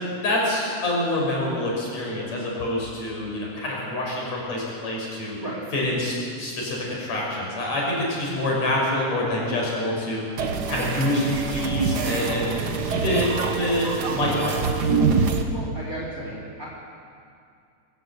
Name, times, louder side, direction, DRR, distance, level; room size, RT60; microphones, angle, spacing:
voice 1, 0.2-5.4 5.7-10.2 10.7-14.6, left 1 dB, 60° left, -3 dB, 6.8 m, -26 dB
sound 1, 10.4-15.4, right 4 dB, 50° right, 1.3 m, -25 dB
voice 2, 15.5-16.7, right 1 dB, 25° right, -4 dB, 3.7 m, -34 dB
24.5 x 14.5 x 8.1 m, 2.4 s
omnidirectional pair, 3.4 m